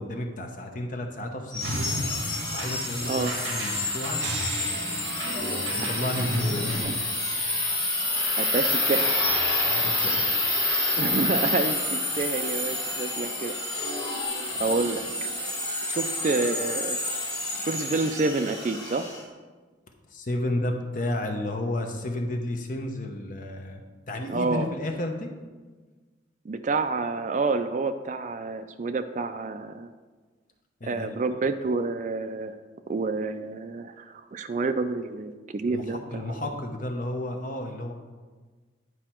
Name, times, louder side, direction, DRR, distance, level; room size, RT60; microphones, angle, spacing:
voice 1, 0.0-2.0 2.5-4.2 5.3-7.0 9.6-10.3 20.1-23.8 24.1-25.3 30.8-31.2 35.6-37.9, left 1 dB, 40° left, 3 dB, 0.8 m, -32 dB
sound 1, 1.5-19.2, left 2 dB, 20° left, 2.0 m, -28 dB
sound 2, 1.6-6.8, right 1 dB, 65° right, 1.6 m, -34 dB
voice 2, 8.4-9.2 11.0-13.6 14.6-15.0 15.9-17.0 17.7-19.1 24.3-24.7 26.5-29.9 30.9-32.6 32.9-36.4, right 3 dB, 40° right, 10 dB, 0.3 m, -28 dB
9.8 x 4.9 x 4.4 m, 1.4 s
head